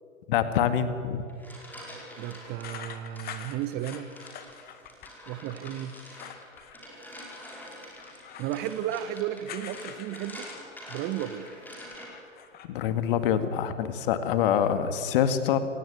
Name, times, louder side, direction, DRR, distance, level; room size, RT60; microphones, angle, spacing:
voice 1, 0.3-1.2 12.6-15.6, left 9 dB, 45° left, 10 dB, 2.1 m, -25 dB
sound 1, 1.1-2.7 3.2-12.3, equal, 5° left, 5.2 m, -46 dB
voice 2, 2.2-4.1 5.3-5.9 8.4-10.5 10.9-11.5, right 12 dB, 25° right, 13 dB, 1.0 m, -33 dB
sound 2, 2.6-5.1 5.5-6.8 7.1-11.6 11.9-12.7, left 9 dB, 25° left, 1.8 m, -46 dB
27.0 x 18.0 x 9.7 m, 2.4 s
figure-of-eight pair, 110°, 38 cm